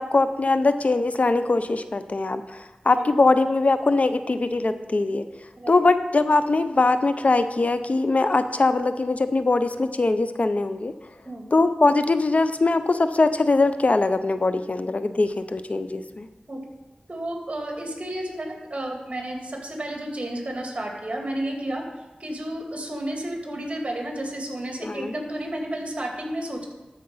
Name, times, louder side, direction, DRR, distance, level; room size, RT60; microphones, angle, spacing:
voice 1, 0.0-5.3 5.7-10.9 11.5-16.3 24.8-25.1, left 3 dB, 55° left, 11 dB, 0.6 m, -22 dB
voice 2, 17.1-21.8 22.2-26.7, right 1 dB, 40° right, 0 dB, 2.7 m, -31 dB
13.0 x 5.1 x 5.5 m, 1.1 s
cardioid pair, 40°, 3 cm